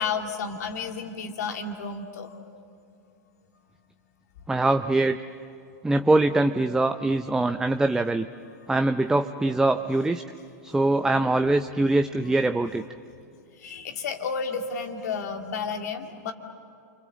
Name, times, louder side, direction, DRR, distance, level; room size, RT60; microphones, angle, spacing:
voice 1, 0.0-2.4 13.6-16.3, left 5 dB, 70° left, 4 dB, 2.4 m, -31 dB
voice 2, 4.5-5.2 5.8-8.3 8.7-10.2 10.6-12.8, right 2 dB, 5° right, 9 dB, 0.6 m, -23 dB
29.0 x 25.5 x 7.5 m, 2.4 s
hypercardioid pair, 100°, 9 cm